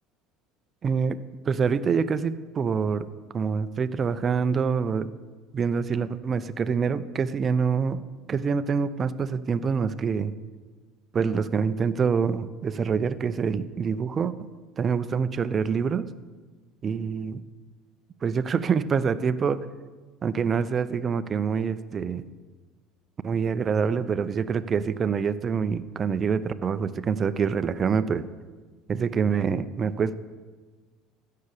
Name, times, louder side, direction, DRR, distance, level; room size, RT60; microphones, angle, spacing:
voice 1, 0.8-1.2 1.5-3.1 3.3-5.1 5.5-8.0 8.3-10.3 11.1-14.3 14.8-16.1 16.8-17.4 18.2-19.6 20.2-22.2 23.2-28.3 28.9-30.1, right 6 dB, 35° right, 13 dB, 0.7 m, -26 dB
15.0 x 6.8 x 6.8 m, 1.4 s
hypercardioid pair, 85°, 0 cm